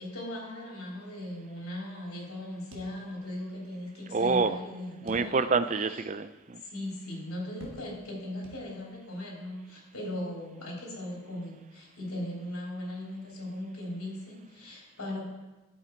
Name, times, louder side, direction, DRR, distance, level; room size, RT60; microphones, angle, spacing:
voice 1, 0.0-5.5 5.9-6.0 6.6-15.2, left 1 dB, 85° left, -2 dB, 3.2 m, -38 dB
sound 1, 2.7-3.6 3.9-4.0 5.1-5.7 6.2-6.3 7.6-8.2 8.4-9.1, equal, 65° right, 1.5 m, -50 dB
voice 2, 4.1-4.6 5.0-6.6, right 4 dB, 35° right, 12 dB, 0.4 m, -27 dB
11.5 x 7.7 x 4.5 m, 1.1 s
head